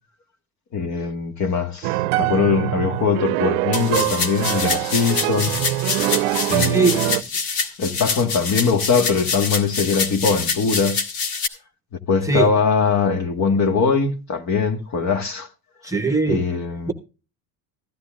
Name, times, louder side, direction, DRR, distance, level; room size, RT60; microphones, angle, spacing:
voice 1, 0.7-5.6 6.5-7.1 7.8-11.0 12.1-15.5 16.3-16.9, left 5 dB, 45° left, 1.7 m, -21 dB
sound 1, 1.8-7.2, right 18 dB, 85° right, 0.6 m, -23 dB
sound 2, 3.7-11.5, left 5 dB, 65° left, 1.9 m, -26 dB
voice 2, 15.8-16.4 16.9-17.0, right 4 dB, 10° right, 1.1 m, -19 dB
15.5 x 11.5 x 2.4 m
cardioid pair, 120°, 39 cm